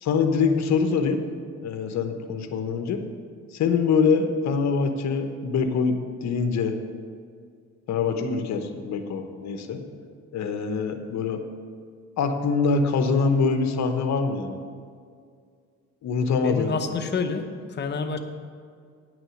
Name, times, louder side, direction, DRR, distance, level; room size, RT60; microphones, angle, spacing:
voice 1, 0.0-1.2 1.6-3.0 3.5-6.7 7.9-9.8 10.3-11.4 12.2-14.6 16.0-16.7, left 5 dB, 65° left, 7 dB, 0.9 m, -24 dB
voice 2, 16.4-18.2, left 4 dB, 35° left, 6 dB, 0.9 m, -28 dB
9.3 x 6.2 x 6.3 m, 2.1 s
cardioid pair, 90°, 30 cm